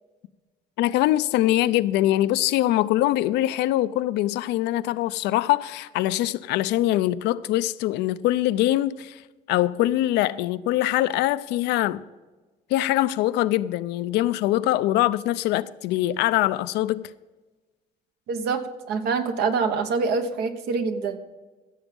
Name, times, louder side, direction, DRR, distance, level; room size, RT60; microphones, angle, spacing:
voice 1, 0.8-9.2 9.5-12.0 12.7-17.0, left 14 dB, 85° left, 0.5 m, -23 dB
voice 2, 18.3-21.2, right 4 dB, 75° right, 1.3 m, -25 dB
16.0 x 7.1 x 5.4 m
cardioid pair, 110°, 17 cm